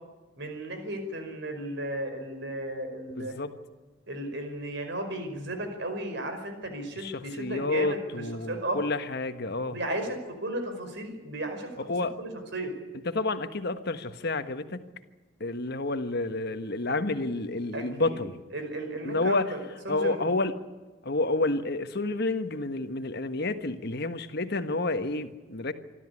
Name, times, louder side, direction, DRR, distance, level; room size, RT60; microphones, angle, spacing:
voice 1, 0.4-3.3 4.1-8.8 9.7-11.7 12.2-12.7 17.7-18.2 18.5-19.6 19.9-20.3, right 1 dB, 60° right, 6 dB, 5.2 m, -34 dB
voice 2, 3.2-3.5 6.9-9.8 11.9-12.1 13.0-14.8 15.4-18.4 19.0-19.5 19.9-20.6 21.0-25.7, left 2 dB, 55° left, 10 dB, 1.4 m, -29 dB
26.0 x 13.5 x 9.8 m, 1.3 s
head